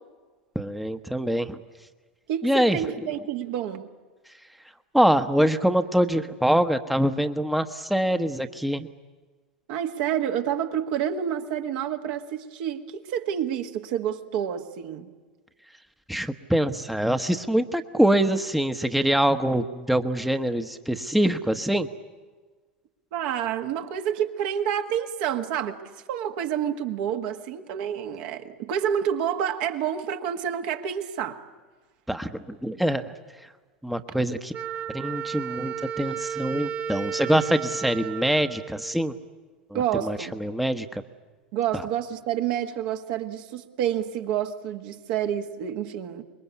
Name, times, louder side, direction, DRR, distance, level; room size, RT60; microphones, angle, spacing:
voice 1, 0.5-1.6 2.4-2.8 4.9-8.9 16.1-21.9 32.1-33.1 33.8-34.5 34.9-39.1 39.7-41.0, right 1 dB, ahead, 1.0 m, -24 dB
voice 2, 2.3-3.9 9.7-15.1 23.1-25.8 26.1-31.4 39.7-40.4 41.5-46.2, right 9 dB, 60° right, 1.7 m, -28 dB
Wind instrument woodwind instrument, 34.5-39.3, right 8 dB, 30° right, 1.2 m, -34 dB
25.0 x 21.5 x 8.4 m
hypercardioid pair, 85°, 6 cm